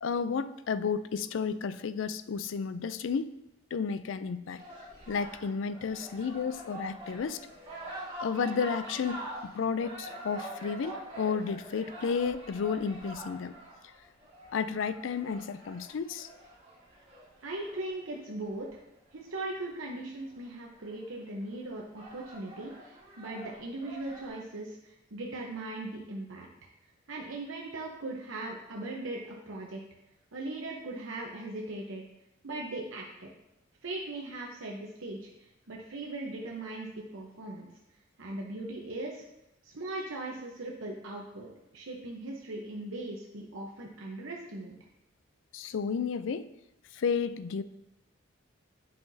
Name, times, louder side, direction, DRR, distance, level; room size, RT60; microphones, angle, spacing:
voice 1, 0.0-3.3 3.7-4.6 5.1-7.4 8.2-13.5 14.5-16.3 45.5-46.5 46.9-47.6, left 6 dB, 70° left, 13 dB, 0.4 m, -32 dB
sound 1, 4.6-18.8 20.3-20.4 20.8-21.3 21.8-24.3, right 1 dB, 25° right, 1.7 m, -45 dB
voice 2, 17.4-18.8 19.1-26.5 27.1-29.8 30.3-32.0 32.4-33.3 33.8-37.7 38.2-39.2 39.6-44.7, right 2 dB, 80° right, -1 dB, 0.9 m, -39 dB
9.8 x 5.7 x 2.7 m, 0.88 s
head